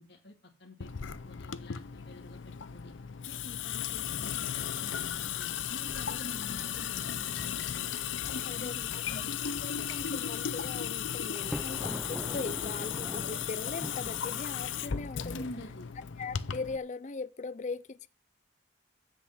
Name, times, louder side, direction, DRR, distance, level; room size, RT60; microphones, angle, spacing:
voice 1, 0.0-2.9 3.3-7.9 8.2-9.3 15.3-15.9, left 1 dB, 60° left, 2.0 m, -48 dB
Water tap faucet / Sink (filling or washing) / Drip, 0.8-16.8, left 9 dB, 80° left, 0.6 m, -36 dB
voice 2, 8.4-9.0 9.4-15.3 16.2-18.1, left 4 dB, 40° left, 0.5 m, -40 dB
Thunder, 11.3-15.4, equal, ahead, 0.7 m, -42 dB
7.6 x 6.6 x 7.7 m
head